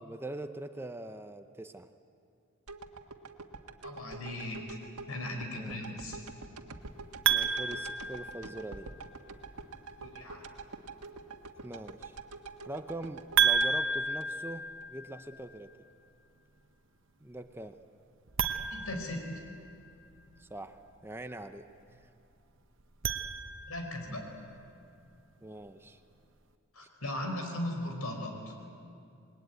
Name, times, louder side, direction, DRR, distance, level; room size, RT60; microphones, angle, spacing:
voice 1, 0.0-1.9 5.5-5.8 7.3-8.9 11.6-12.2 12.6-15.7 17.2-17.8 20.4-21.7 22.0-22.1 25.4-26.0, right 1 dB, 10° right, 8 dB, 0.7 m, -43 dB
sound 1, 2.7-14.9 15.3-15.4, right 3 dB, 90° right, 1.6 m, -46 dB
voice 2, 3.8-4.8 5.1-6.2 10.0-10.4 18.7-19.3 23.7-24.2 26.7-28.5, left 1 dB, 80° left, 3 dB, 5.2 m, -38 dB
sound 2, 7.2-8.9 13.4-15.4 18.3-19.9 22.8-24.0, right 6 dB, 60° right, 1.0 m, -31 dB
28.0 x 21.0 x 9.3 m, 2.5 s
head